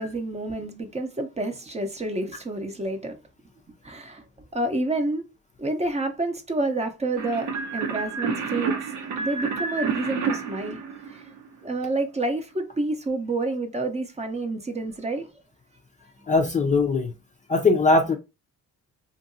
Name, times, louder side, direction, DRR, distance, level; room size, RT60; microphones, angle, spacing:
voice 1, 0.0-3.2 3.8-4.2 4.5-5.2 5.6-8.8 9.2-10.8 11.1-11.2 11.6-15.3, right 2 dB, 20° right, 0.6 m, -29 dB
sound 1, 7.2-11.6, right 5 dB, 85° right, 0.9 m, -29 dB
voice 2, 16.3-17.1 17.5-18.2, left 3 dB, 25° left, 0.4 m, -20 dB
2.8 x 2.5 x 2.6 m
cardioid pair, 90°, 30 cm